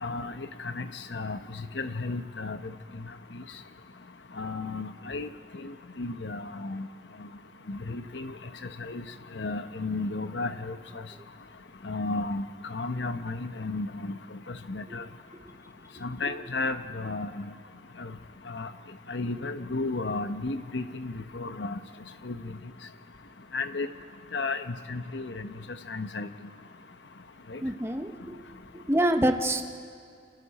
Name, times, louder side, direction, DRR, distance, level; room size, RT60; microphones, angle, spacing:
voice 1, 0.0-3.4 4.4-6.9 7.7-8.4 8.8-9.0 9.3-11.0 11.8-14.2 14.5-15.0 16.0-17.5 18.0-18.1 18.5-18.7 19.1-21.8 22.2-22.6 23.5-23.9 24.3-25.5 25.9-26.3 27.5-27.6, left 3 dB, 70° left, 9 dB, 1.0 m, -34 dB
voice 2, 27.6-28.1 28.7-29.6, right 1 dB, 15° right, 5 dB, 1.0 m, -25 dB
28.0 x 27.5 x 4.3 m, 2.2 s
head